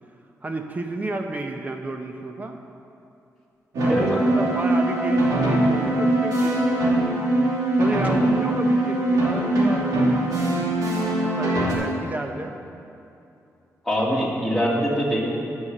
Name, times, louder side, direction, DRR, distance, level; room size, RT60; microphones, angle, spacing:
voice 1, 0.4-2.6 3.8-7.1 7.7-10.5 11.2-12.6, right 2 dB, 25° right, 4 dB, 0.9 m, -32 dB
sound 1, 3.7-11.7, right 1 dB, 85° right, 2.6 m, -22 dB
voice 2, 13.9-15.4, equal, ahead, -5 dB, 2.1 m, -23 dB
10.5 x 6.6 x 6.7 m, 2.7 s
wide cardioid pair, 125°, 6 cm